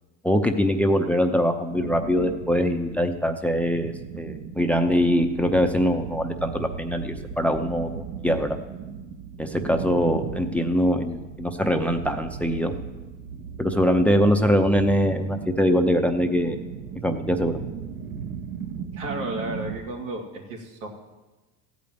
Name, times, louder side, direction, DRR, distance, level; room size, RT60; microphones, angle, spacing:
voice 1, 0.2-8.6 9.4-12.7 13.6-16.6 17.0-17.6, equal, 5° left, 6 dB, 0.6 m, -23 dB
sound 1, 1.7-19.8, right 6 dB, 65° right, 1.3 m, -37 dB
voice 2, 18.9-20.9, right 1 dB, 85° right, 0 dB, 2.7 m, -33 dB
14.0 x 5.2 x 9.2 m, 1.1 s
supercardioid pair, 115°, 38 cm